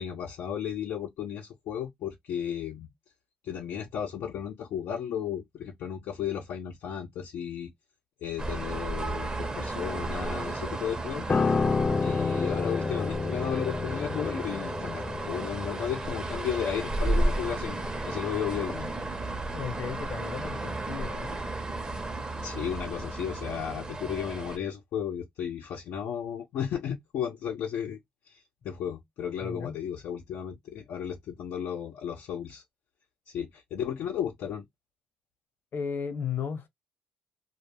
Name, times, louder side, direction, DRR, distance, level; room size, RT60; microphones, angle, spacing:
voice 1, 0.0-2.9 3.4-7.7 8.2-11.3 12.0-17.8 18.1-18.9 22.4-28.0 28.3-32.6 33.3-34.7, left 9 dB, 70° left, 0.6 m, -34 dB
sound 1, 8.4-24.6, right 2 dB, 20° right, 0.8 m, -33 dB
Piano, 11.3-20.7 20.9-21.2, left 4 dB, 30° left, 0.3 m, -31 dB
voice 2, 19.5-21.4 29.4-29.7 35.7-36.7, left 7 dB, 55° left, 0.9 m, -35 dB
2.2 x 2.0 x 3.1 m
supercardioid pair, 75°, 4 cm